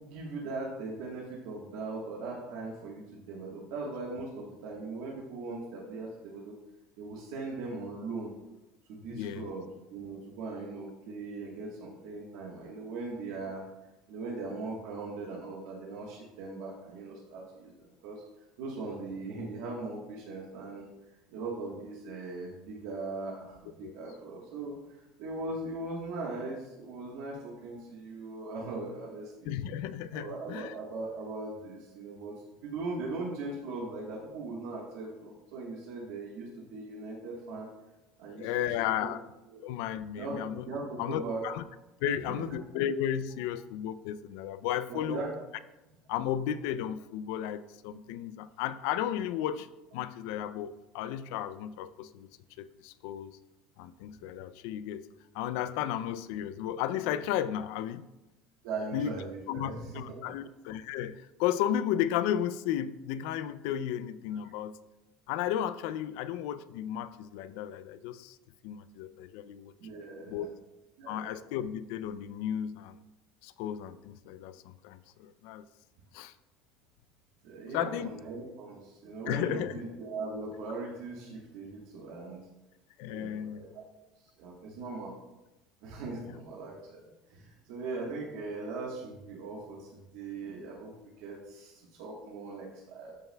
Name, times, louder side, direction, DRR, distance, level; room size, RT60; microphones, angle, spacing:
voice 1, 0.0-6.6 7.0-8.3 8.9-9.6 9.9-13.6 14.1-18.2 18.6-20.9 21.3-24.8 25.2-29.6 30.1-37.7 38.2-39.1 39.5-39.6 40.2-40.4 40.7-41.4 42.4-42.5 44.9-45.3 58.6-60.2 64.5-64.6 69.8-70.5 71.0-71.2 77.4-82.4 83.1-83.8 84.4-85.1 85.8-87.0 87.3-93.2, right 3 dB, 70° right, -3 dB, 1.3 m, -39 dB
voice 2, 9.1-9.6 23.8-23.9 29.4-30.7 38.3-39.2 39.6-40.7 41.0-41.6 42.0-45.2 46.1-49.7 49.9-52.3 52.6-53.4 53.8-55.1 55.3-58.1 58.9-59.2 59.5-64.8 65.3-68.4 68.6-69.7 70.3-70.5 71.1-73.0 73.4-75.7 76.1-76.3 77.7-78.1 79.3-79.8 83.0-83.7, left 10 dB, 65° left, 14 dB, 0.4 m, -34 dB
13.0 x 5.5 x 2.3 m, 0.99 s
cardioid pair, 175°, 0 cm